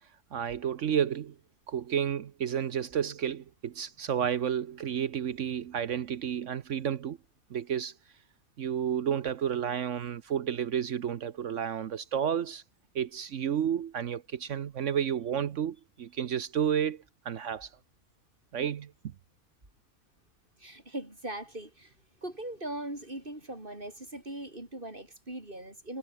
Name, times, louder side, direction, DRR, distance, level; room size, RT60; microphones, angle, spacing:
voice 1, 0.3-1.4 1.7-7.2 7.5-7.9 8.6-12.6 12.9-17.7 18.5-19.1, right 8 dB, 65° right, 1.1 m, -31 dB
voice 2, 20.6-21.9 22.2-26.0, right 1 dB, 35° right, 5.8 m, -40 dB
omnidirectional pair, 1.5 m